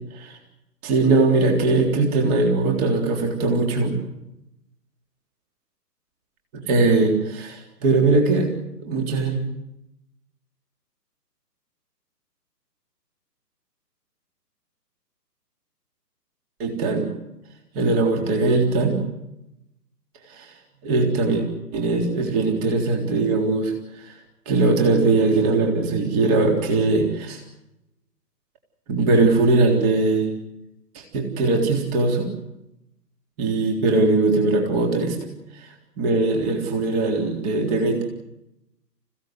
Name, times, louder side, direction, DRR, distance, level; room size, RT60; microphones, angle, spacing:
voice 1, 0.8-4.0 6.5-8.5 8.8-9.4 16.6-17.1 17.7-19.0 20.3-20.5 20.8-21.4 21.7-24.1 24.5-27.4 28.9-30.4 30.9-32.3 33.4-35.3 35.5-38.0, right 3 dB, 25° right, 2 dB, 3.6 m, -20 dB
28.5 x 16.5 x 8.0 m, 0.88 s
figure-of-eight pair, 140°, 49 cm